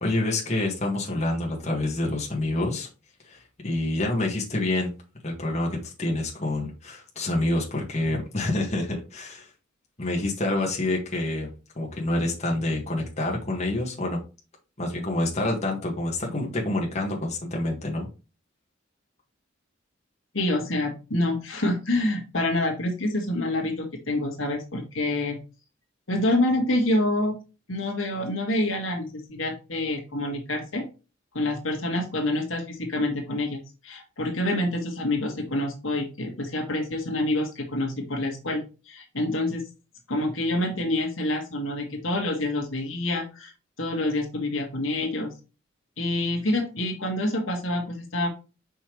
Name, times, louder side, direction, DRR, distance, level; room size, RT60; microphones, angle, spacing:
voice 1, 0.0-2.9 3.3-3.4 3.6-4.9 5.2-9.5 10.0-14.2 14.8-18.1, left 2 dB, 35° left, -2 dB, 1.8 m, -27 dB
voice 2, 20.3-25.4 26.1-27.3 27.7-30.8 31.3-39.6 40.1-43.5 43.8-45.3 46.0-48.3, left 1 dB, 85° left, 2 dB, 1.9 m, -27 dB
5.6 x 5.6 x 3.2 m, 0.31 s
head